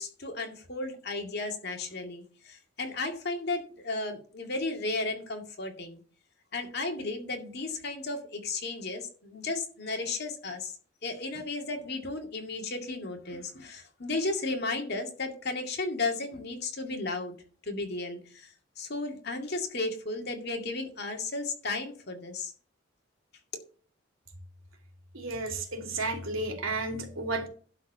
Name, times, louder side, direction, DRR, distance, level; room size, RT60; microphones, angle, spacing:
voice 1, 0.0-6.0 6.5-10.7 11.0-17.4 17.6-22.5, left 3 dB, 55° left, 3 dB, 2.2 m, -34 dB
voice 2, 25.1-27.5, right 2 dB, 85° right, 3 dB, 2.8 m, -32 dB
11.5 x 4.6 x 6.7 m, 0.42 s
head